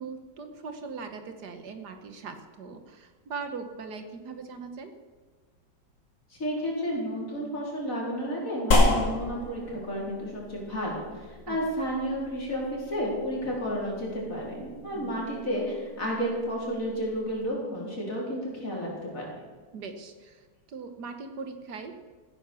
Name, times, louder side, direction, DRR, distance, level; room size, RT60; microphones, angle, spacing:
voice 1, 0.0-4.9 11.5-11.6 14.9-15.2 19.7-21.9, right 4 dB, 65° right, 7 dB, 1.7 m, -40 dB
voice 2, 6.3-19.2, equal, 45° left, -4 dB, 4.6 m, -32 dB
sound 1, 8.7-17.4, left 1 dB, 70° left, 3.0 m, -31 dB
15.0 x 9.9 x 7.0 m, 1.4 s
omnidirectional pair, 1.9 m